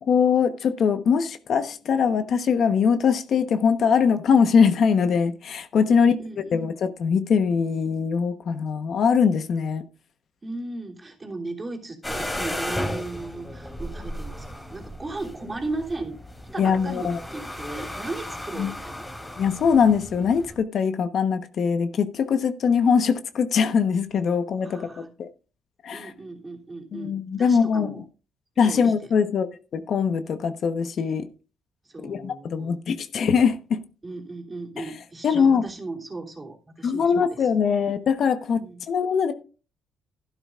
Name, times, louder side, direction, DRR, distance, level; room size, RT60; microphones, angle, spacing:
voice 1, 0.0-6.1 6.5-9.8 16.6-17.2 18.6-18.7 19.4-25.3 25.8-26.1 26.9-27.9 28.6-29.5 29.7-31.3 32.0-33.8 34.8-34.9 35.2-35.6 36.8-39.3, left 6 dB, 60° left, 1.1 m, -22 dB
voice 2, 5.9-6.7 10.4-16.2 16.5-19.1 24.6-25.1 25.9-28.0 28.6-29.1 31.8-32.8 34.0-37.5 38.6-38.8, right 2 dB, 25° right, 3.1 m, -36 dB
sound 1, 12.0-20.5, left 1 dB, 15° left, 3.1 m, -35 dB
12.5 x 12.0 x 2.5 m
cardioid pair, 90°, 0 cm